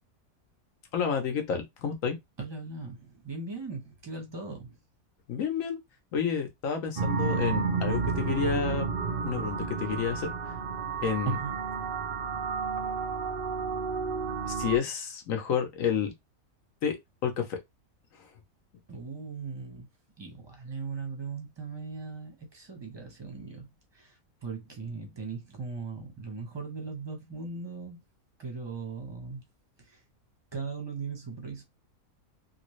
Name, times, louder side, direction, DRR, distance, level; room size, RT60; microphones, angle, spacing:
voice 1, 0.9-2.2 5.3-5.8 6.1-8.9 9.2-10.3 11.0-11.3 14.5-16.1 16.8-17.0 17.2-17.6, left 7 dB, 65° left, 1.2 m, -30 dB
voice 2, 2.4-4.8 11.3-11.5 18.9-19.9 20.2-28.0 28.4-29.4 29.8-30.0 30.5-31.6, right 4 dB, 20° right, 0.8 m, -38 dB
sound 1, 7.0-14.8, right 5 dB, 55° right, 0.7 m, -31 dB
3.4 x 2.6 x 3.1 m
omnidirectional pair, 1.5 m